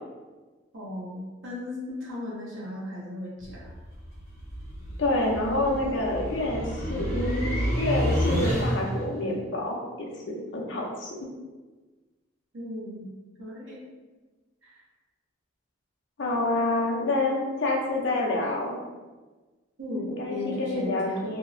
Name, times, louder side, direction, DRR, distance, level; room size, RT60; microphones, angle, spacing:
voice 1, 0.7-3.7 12.5-13.1 13.4-13.8 14.6-14.8 19.8-21.4, left 1 dB, 75° right, -5 dB, 0.9 m, -36 dB
sound 1, 3.4-9.1, equal, 15° right, 0.8 m, -29 dB
voice 2, 5.0-6.6 6.9-11.3 16.2-18.8 20.1-21.4, left 2 dB, 60° left, -1 dB, 0.5 m, -28 dB
2.7 x 2.0 x 2.5 m, 1.3 s
head